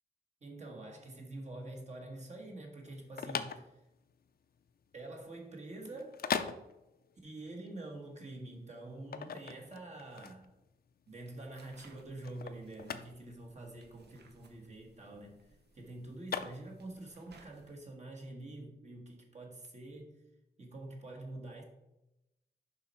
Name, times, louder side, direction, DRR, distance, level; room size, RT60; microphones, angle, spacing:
voice 1, 0.4-3.7 4.9-6.2 7.2-10.5 11.1-15.5 15.7-20.2 20.6-21.6, right 2 dB, 45° right, 0 dB, 1.5 m, -46 dB
sound 1, 2.8-17.1, left 7 dB, 65° left, 0.5 m, -41 dB
sound 2, 11.1-17.8, right 3 dB, 85° right, 1.0 m, -64 dB
7.2 x 5.5 x 4.4 m, 0.92 s
wide cardioid pair, 170°, 17 cm